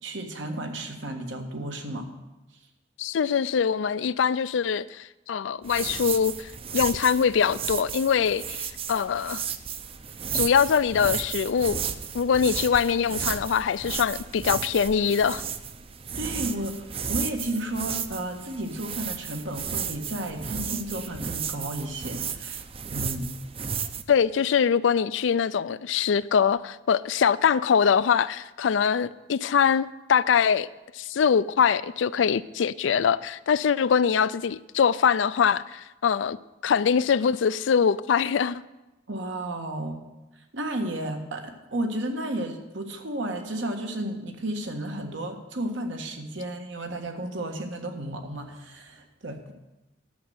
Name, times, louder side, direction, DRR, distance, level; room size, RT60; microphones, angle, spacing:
voice 1, 0.0-2.1 16.2-22.6 22.9-23.3 39.1-40.0 40.5-49.4, right 1 dB, 80° right, 1.5 m, -33 dB
voice 2, 3.0-9.4 10.3-11.8 12.1-15.4 24.1-30.7 30.9-36.4 36.6-38.6, left 7 dB, 85° left, 0.4 m, -23 dB
sound 1, 5.6-24.0, right 7 dB, 30° right, 0.5 m, -34 dB
11.0 x 6.6 x 7.9 m
head